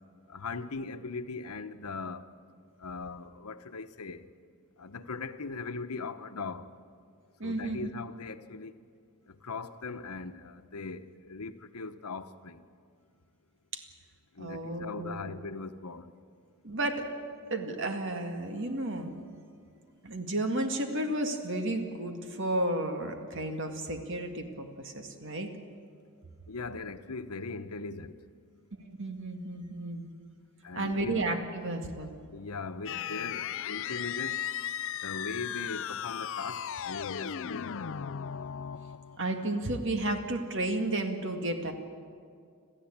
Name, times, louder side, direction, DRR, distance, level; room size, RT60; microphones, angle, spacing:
voice 1, 0.3-2.2 2.8-4.2 4.8-6.7 7.4-8.7 9.3-12.6 14.4-16.1 26.5-28.1 30.6-31.2 32.3-34.5 35.0-37.9, left 4 dB, 90° left, 1.0 m, -39 dB
voice 2, 7.4-7.9 13.7-13.8 14.4-15.3 16.6-17.1 17.5-19.2 20.0-25.5 28.7-30.1 30.7-32.2 39.2-41.7, right 1 dB, 55° right, 2.0 m, -32 dB
sound 1, 32.9-39.4, left 9 dB, 60° left, 0.4 m, -36 dB
27.0 x 14.5 x 8.7 m
head